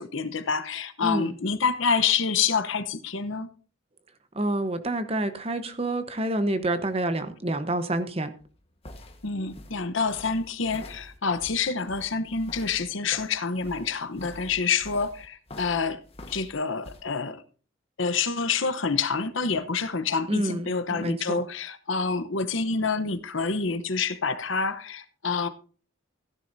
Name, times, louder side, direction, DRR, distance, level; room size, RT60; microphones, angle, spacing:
voice 1, 0.0-3.5 9.2-16.0 16.3-17.4 18.0-25.5, left 5 dB, 70° left, 1.0 m, -27 dB
voice 2, 1.0-1.3 4.4-8.3 20.3-21.5, right 1 dB, 30° right, 1.0 m, -28 dB
sound 1, 8.4-17.0, left 1 dB, 30° left, 1.4 m, -46 dB
15.5 x 10.5 x 2.7 m
head